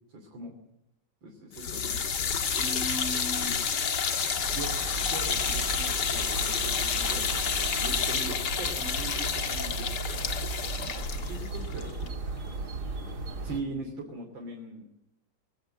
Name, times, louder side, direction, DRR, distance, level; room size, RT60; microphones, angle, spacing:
voice 1, 0.1-0.5 1.2-2.0 2.6-3.6 4.5-4.7 5.1-12.6 13.4-14.8, right 2 dB, 80° right, 2 dB, 3.7 m, -40 dB
sound 1, 1.5-12.6, left 6 dB, 65° left, 2.3 m, -30 dB
sound 2, 4.4-13.6, right 3 dB, 55° right, 2.8 m, -37 dB
23.0 x 17.5 x 8.9 m, 0.85 s
omnidirectional pair, 2.0 m